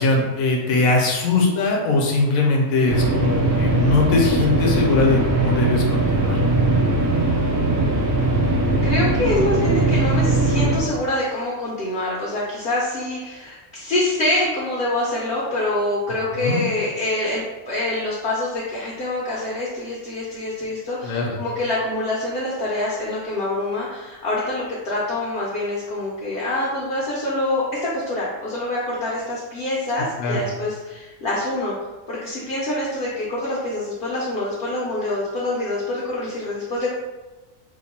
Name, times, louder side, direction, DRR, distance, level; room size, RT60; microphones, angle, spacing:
voice 1, 0.0-6.4 16.3-16.7 21.0-21.3 30.2-30.4, left 2 dB, 75° left, -1 dB, 1.1 m, -20 dB
sound 1, 2.9-10.8, right 2 dB, 60° right, 0.8 m, -20 dB
voice 2, 8.8-31.7 32.1-36.9, left 1 dB, 55° left, -6 dB, 0.7 m, -25 dB
2.9 x 2.1 x 4.1 m, 1.2 s
omnidirectional pair, 1.5 m